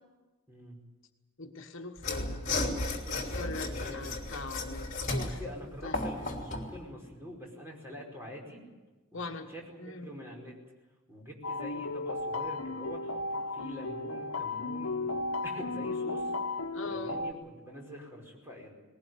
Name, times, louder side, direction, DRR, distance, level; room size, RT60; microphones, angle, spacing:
voice 1, 0.5-0.8 3.2-4.2 5.2-8.6 9.1-9.2 9.5-10.6 11.1-16.3 16.9-18.7, equal, 10° right, -1 dB, 5.1 m, -45 dB
voice 2, 1.4-2.5 3.1-5.4 5.8-6.0 9.1-9.5 9.8-10.1 16.7-17.2, left 3 dB, 60° left, 4 dB, 1.4 m, -41 dB
Mechanisms / Sawing, 2.0-6.7, left 2 dB, 35° left, 3.1 m, -34 dB
sound 1, 11.4-17.3, left 2 dB, 85° left, 1.0 m, -35 dB
20.0 x 18.5 x 9.4 m, 1.2 s
head